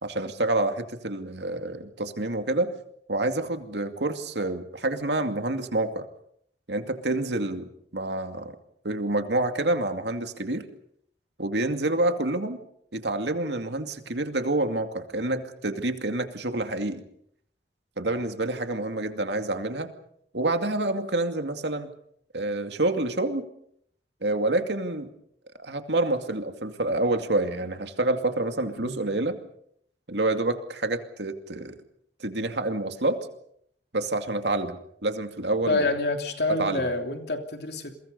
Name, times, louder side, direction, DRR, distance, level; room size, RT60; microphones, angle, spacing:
voice 1, 0.0-2.7 3.1-6.1 6.7-8.6 8.8-10.6 11.4-12.6 12.9-17.0 18.0-19.9 20.3-21.9 22.3-23.5 24.2-25.1 25.6-29.4 30.1-31.8 32.2-33.2 33.9-35.8 36.6-36.9, right 2 dB, 70° right, 7 dB, 2.4 m, -28 dB
voice 2, 35.7-37.9, left 2 dB, 65° left, 5 dB, 3.1 m, -27 dB
29.5 x 22.5 x 5.4 m, 0.70 s
head